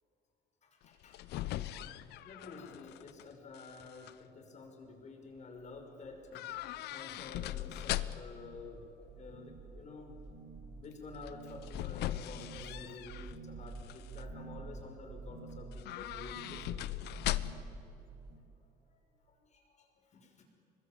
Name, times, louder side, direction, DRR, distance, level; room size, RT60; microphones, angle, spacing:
voice 1, 0.6-1.7 2.2-10.1 10.8-16.9 18.9-19.0 19.4-20.4, left 4 dB, 45° left, 3 dB, 5.6 m, -50 dB
sound 1, 0.8-3.2 3.5-4.1 6.3-8.4 11.2-13.3 13.8-14.2 15.7-17.8 18.1-18.2, left 14 dB, 80° left, 0.8 m, -39 dB
sound 2, 5.6-5.8 6.1-6.8 7.1-7.8 8.1-18.4, right 4 dB, 65° right, 7.5 m, -49 dB
25.0 x 21.0 x 8.9 m, 2.8 s
cardioid pair, 110°, 17 cm